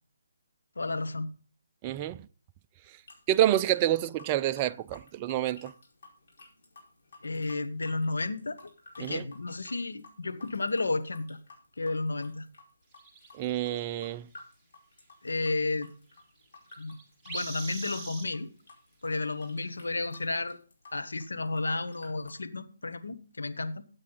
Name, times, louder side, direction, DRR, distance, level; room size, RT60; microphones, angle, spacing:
voice 1, 0.8-1.3 7.2-8.7 9.0-11.4 11.8-12.5 15.2-15.9 16.8-16.9 17.3-18.5 19.0-20.6 20.9-23.8, left 3 dB, 80° left, 1.2 m, -32 dB
voice 2, 1.8-2.2 3.3-5.7 9.0-9.3 13.4-14.3, right 13 dB, 20° right, 0.4 m, -28 dB
sound 1, 2.9-22.4, left 3 dB, 55° left, 4.8 m, -54 dB
sound 2, 12.9-13.9 16.4-16.5 16.7-18.3 19.3-19.4 19.7-19.8, right 3 dB, 5° right, 2.0 m, -42 dB
13.0 x 8.5 x 4.0 m
figure-of-eight pair, 155°, 0 cm